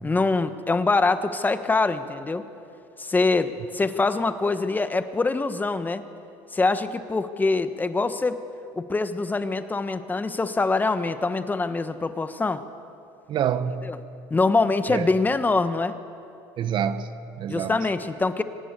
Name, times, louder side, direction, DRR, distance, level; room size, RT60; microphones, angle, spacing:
voice 1, 0.0-2.4 3.0-6.0 6.5-8.4 8.7-12.6 13.8-14.0 14.3-16.0 17.5-18.4, left 3 dB, 20° left, 1.3 m, -24 dB
voice 2, 13.3-13.9 14.9-15.1 16.6-17.8, right 8 dB, 55° right, 1.4 m, -27 dB
24.0 x 20.0 x 8.3 m
supercardioid pair, 95°, 10 cm